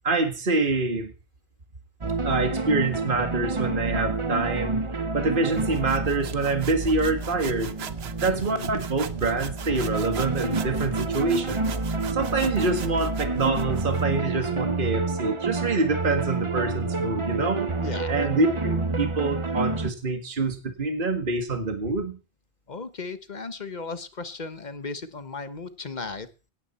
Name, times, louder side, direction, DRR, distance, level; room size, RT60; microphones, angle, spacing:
voice 1, 0.0-1.1 2.2-7.8 8.2-11.7 12.1-17.7 18.1-22.2, right 3 dB, 50° right, 6 dB, 2.0 m, -26 dB
sound 1, 2.0-19.9, right 3 dB, 30° right, 1.0 m, -29 dB
sound 2, 5.5-14.1, right 7 dB, 65° right, 1.2 m, -39 dB
voice 2, 8.2-8.7 17.8-18.1 22.7-26.3, left 4 dB, 40° left, 12 dB, 1.4 m, -36 dB
17.0 x 13.5 x 4.4 m, 0.34 s
omnidirectional pair, 1.2 m